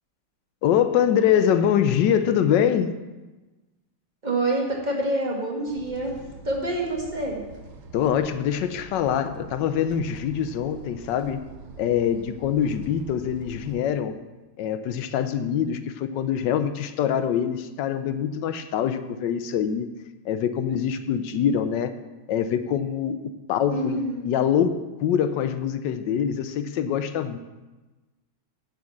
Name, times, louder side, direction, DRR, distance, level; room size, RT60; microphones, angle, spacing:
voice 1, 0.6-3.0 7.9-11.4 11.8-14.2 14.6-19.9 20.2-21.9 22.3-27.4, left 8 dB, 75° left, 11 dB, 1.2 m, -24 dB
voice 2, 4.2-6.2 6.4-7.4 23.7-24.2, right 2 dB, 25° right, -1 dB, 1.7 m, -27 dB
sound 1, 5.7-13.8, right 4 dB, 85° right, 1.7 m, -45 dB
8.4 x 6.3 x 7.1 m, 1.2 s
omnidirectional pair, 2.1 m